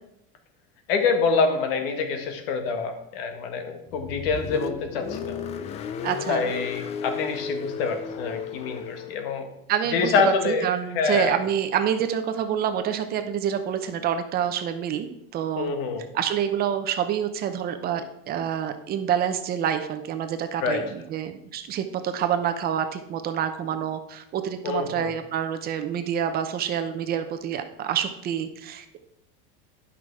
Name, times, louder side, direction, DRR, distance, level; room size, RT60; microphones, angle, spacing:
voice 1, 0.9-5.4 6.3-9.5 9.9-10.7 10.9-11.4 15.6-16.0 20.6-20.8 24.6-25.1, left 4 dB, 70° left, 6 dB, 1.7 m, -26 dB
Car, 3.9-9.3, left 7 dB, 20° left, 0.3 m, -34 dB
voice 2, 6.0-6.5 9.7-15.7 16.1-29.0, right 9 dB, 30° right, 8 dB, 0.7 m, -27 dB
11.0 x 5.9 x 4.7 m, 0.80 s
supercardioid pair, 150°, 30 cm